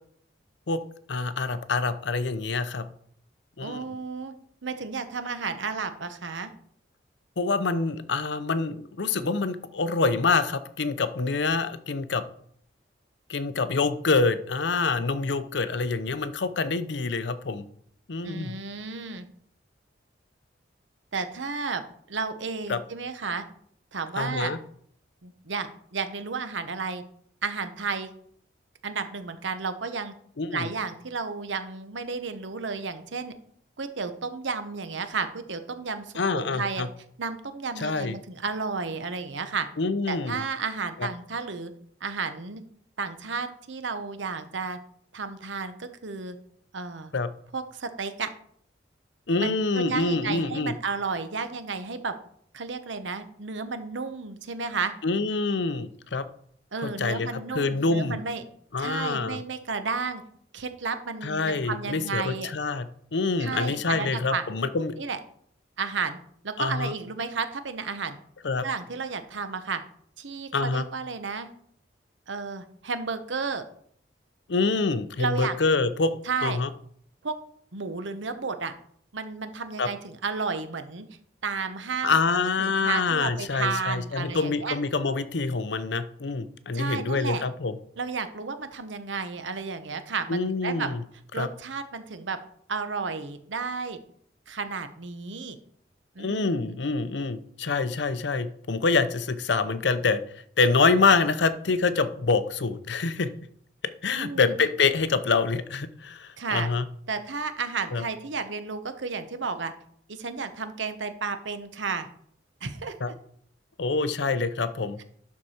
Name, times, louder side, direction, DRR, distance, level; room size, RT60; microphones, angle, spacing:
voice 1, 1.1-2.8 3.6-3.8 7.4-12.2 13.3-17.7 18.1-18.6 22.7-22.8 24.2-24.6 30.4-30.7 36.2-36.9 37.8-38.2 39.8-40.4 41.0-41.1 47.1-47.3 49.3-50.7 55.0-56.3 56.8-58.2 58.7-59.4 61.2-62.9 63.1-65.0 66.6-66.9 68.4-68.6 70.5-70.8 74.5-76.7 79.8-79.9 82.0-87.8 90.3-91.0 91.4-91.5 96.2-100.2 100.6-103.3 104.0-106.9 107.9-108.0 113.0-113.1 113.8-115.0, left 4 dB, 70° left, 12 dB, 0.7 m, -26 dB
voice 2, 3.6-4.3 4.6-6.5 18.2-19.3 21.1-21.8 22.1-23.4 23.9-24.5 25.2-27.0 27.4-28.1 28.8-30.1 30.5-33.3 33.8-36.8 37.2-39.7 40.1-41.7 42.0-42.6 43.0-44.8 45.1-46.4 46.7-47.1 47.5-48.3 49.3-52.1 52.5-54.9 56.7-58.4 58.8-60.2 60.5-62.5 63.4-64.4 65.0-65.2 65.8-66.2 66.4-68.2 68.6-69.8 70.2-71.5 72.3-73.6 75.2-75.6 76.3-76.6 77.2-77.4 77.7-78.7 79.1-81.1 81.4-82.2 82.6-84.8 86.7-87.4 88.0-90.9 91.3-92.4 92.7-94.0 94.5-95.6 96.2-96.6 104.2-104.6 106.4-106.7 107.1-109.7 110.1-112.1 112.6-113.1, right 4 dB, 80° right, 10 dB, 0.9 m, -32 dB
11.5 x 4.7 x 4.4 m, 0.63 s
head